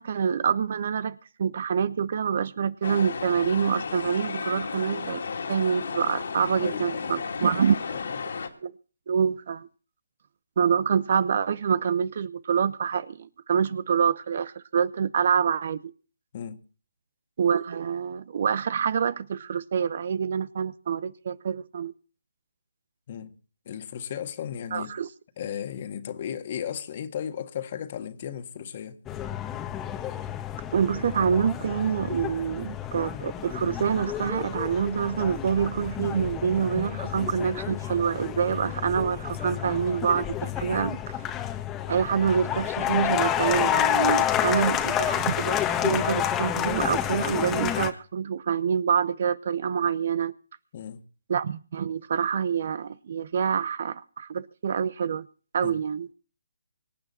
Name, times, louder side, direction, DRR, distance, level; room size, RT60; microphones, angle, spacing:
voice 1, 0.0-5.2 5.5-7.7 8.6-8.7 9.1-9.7 10.6-15.9 17.4-21.9 24.7-25.1 30.7-41.2 41.9-50.3 51.3-55.3 55.5-56.1, right 7 dB, 50° right, 0.8 m, -26 dB
sound 1, 2.8-8.5, left 5 dB, 65° left, 2.8 m, -33 dB
voice 2, 6.6-7.2 7.4-7.6 7.9-8.2 16.3-16.6 23.1-23.3 23.7-24.9 25.4-29.0 44.3-44.5 50.7-51.0 55.6-55.8, left 9 dB, 40° left, 1.8 m, -35 dB
sound 2, 29.1-47.9, left 10 dB, 15° left, 1.4 m, -29 dB
25.0 x 9.0 x 4.3 m
figure-of-eight pair, 145°, 0 cm